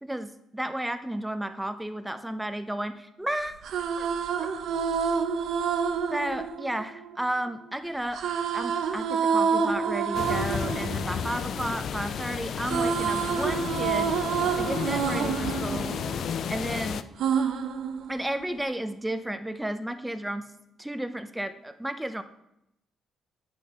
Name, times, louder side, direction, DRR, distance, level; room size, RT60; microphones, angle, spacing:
voice 1, 0.0-3.6 4.0-4.1 6.1-8.2 8.5-14.1 14.5-16.0 16.5-17.1 18.1-20.5 20.8-22.2, right 1 dB, 5° right, 10 dB, 0.7 m, -33 dB
sound 1, 3.4-7.5 8.1-12.2 12.4-16.7 17.2-18.6, right 6 dB, 75° right, 0.8 m, -28 dB
sound 2, 10.1-17.0, left 7 dB, 65° left, 0.4 m, -32 dB
8.5 x 6.7 x 4.3 m, 0.80 s
cardioid pair, 90°, 0 cm